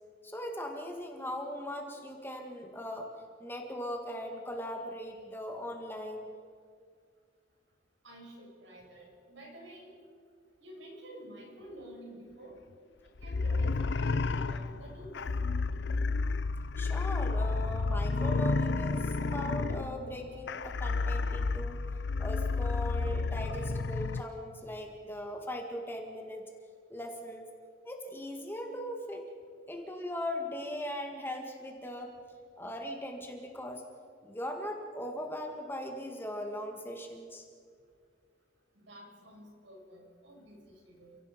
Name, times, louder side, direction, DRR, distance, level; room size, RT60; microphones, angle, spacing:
voice 1, 0.2-3.1 3.4-6.3 16.8-21.8 22.2-26.4 26.9-27.5 27.9-29.3 29.7-32.1 32.6-33.8 34.2-37.4, equal, 10° left, 2 dB, 1.8 m, -39 dB
voice 2, 8.0-10.0 10.6-12.6 13.0-15.2 38.7-41.2, right 1 dB, 70° right, 0 dB, 6.2 m, -50 dB
sound 1, 13.2-24.2, left 3 dB, 60° left, 0.6 m, -31 dB
29.5 x 17.0 x 5.2 m, 2.1 s
head